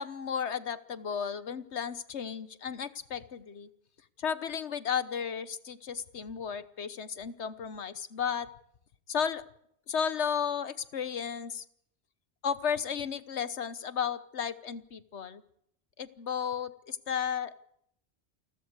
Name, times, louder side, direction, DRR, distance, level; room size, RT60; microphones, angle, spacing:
voice 1, 0.0-3.7 4.2-8.5 9.1-9.4 9.9-11.6 12.4-15.4 16.0-17.6, left 7 dB, 90° left, 15 dB, 1.4 m, -34 dB
29.0 x 13.0 x 8.2 m, 0.72 s
omnidirectional pair, 1.1 m